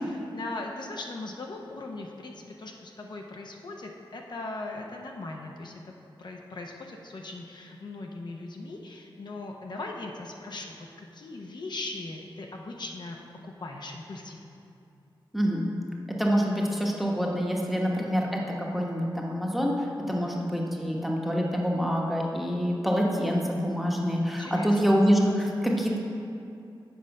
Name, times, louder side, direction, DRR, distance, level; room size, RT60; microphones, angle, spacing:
voice 1, 0.3-13.2 13.4-14.6 20.2-20.4 24.3-25.0, left 2 dB, 55° left, 1 dB, 0.7 m, -39 dB
voice 2, 15.3-15.6 16.2-18.4 18.7-26.0, equal, ahead, -1 dB, 1.0 m, -26 dB
7.9 x 4.9 x 5.3 m, 2.6 s
wide cardioid pair, 90°, 9 cm